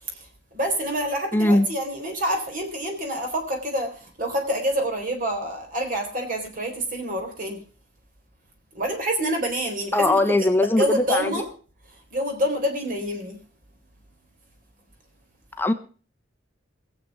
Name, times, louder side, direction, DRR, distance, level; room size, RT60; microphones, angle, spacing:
voice 1, 0.0-7.6 8.7-11.5 11.9-13.4, equal, 50° right, 3 dB, 4.1 m, -27 dB
voice 2, 1.3-1.7 9.9-11.5 15.6-15.7, left 2 dB, 10° left, 8 dB, 1.2 m, -20 dB
22.0 x 8.0 x 4.9 m, 0.39 s
head